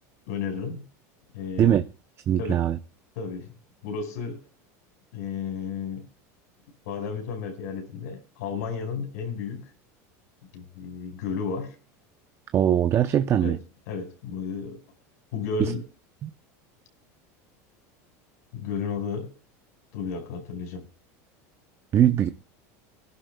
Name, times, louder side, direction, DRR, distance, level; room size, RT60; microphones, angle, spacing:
voice 1, 0.3-0.9 1.3-1.8 2.4-2.7 3.2-3.5 3.8-4.4 5.1-6.1 6.9-9.7 10.5-11.8 13.4-13.6 13.9-14.8 15.3-15.8 18.5-19.3 19.9-20.9, left 5 dB, 80° left, 5.3 m, -33 dB
voice 2, 2.3-2.8 12.5-13.6 15.6-15.7 16.2-16.3 21.9-22.3, right 10 dB, 30° right, 0.7 m, -21 dB
23.5 x 11.0 x 2.3 m
supercardioid pair, 140°, 8 cm